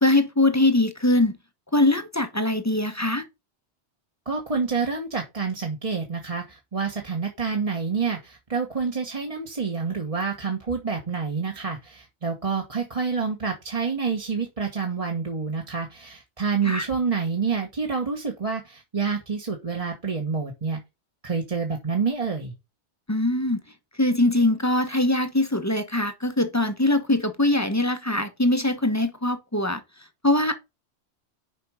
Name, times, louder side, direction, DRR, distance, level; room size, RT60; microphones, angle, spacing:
voice 1, 0.0-1.4 1.7-3.2 16.6-16.9 23.1-23.6 24.0-29.8 30.2-30.5, left 1 dB, 15° left, 0.8 m, -22 dB
voice 2, 4.2-20.8 21.2-22.5, right 5 dB, 30° right, 1.3 m, -28 dB
6.5 x 5.2 x 4.8 m
omnidirectional pair, 1.2 m